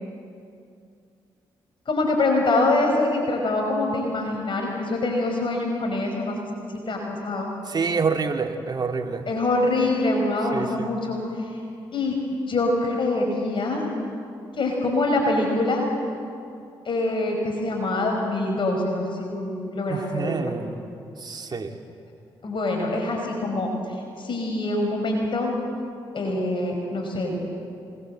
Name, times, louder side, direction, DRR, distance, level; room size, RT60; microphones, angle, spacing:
voice 1, 1.9-6.4 6.7-7.5 9.3-11.6 11.9-12.2 12.5-13.9 14.5-15.8 16.9-20.5 22.4-25.5 26.1-27.4, left 2 dB, 55° left, 1 dB, 5.3 m, -25 dB
voice 2, 7.7-9.2 10.5-10.9 19.9-20.8 21.2-21.7, right 5 dB, 40° right, 4 dB, 2.5 m, -27 dB
26.5 x 20.5 x 7.8 m, 2.5 s
supercardioid pair, 50°, 10 cm